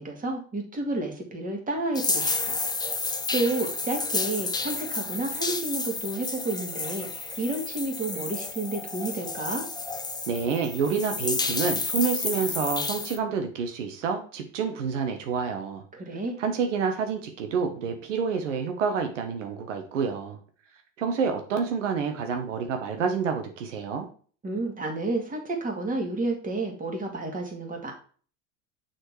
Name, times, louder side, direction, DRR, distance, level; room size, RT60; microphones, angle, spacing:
voice 1, 0.0-2.6 3.3-9.6 15.9-16.4 24.4-27.9, right 2 dB, 20° right, 1 dB, 2.5 m, -31 dB
sound 1, 1.9-13.2, left 3 dB, 10° left, 0.8 m, -31 dB
voice 2, 10.3-15.8 16.4-20.4 21.0-24.1, right 5 dB, 90° right, 5 dB, 1.2 m, -28 dB
6.4 x 4.4 x 4.7 m, 0.42 s
hypercardioid pair, 90°, 36 cm